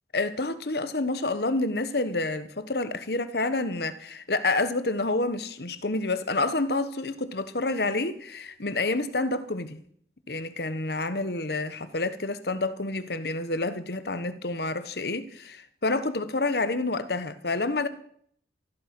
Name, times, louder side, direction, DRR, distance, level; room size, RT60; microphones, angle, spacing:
voice 1, 0.1-9.8 10.3-17.9, left 2 dB, 60° left, 1.2 m, -28 dB
14.5 x 12.5 x 6.1 m
head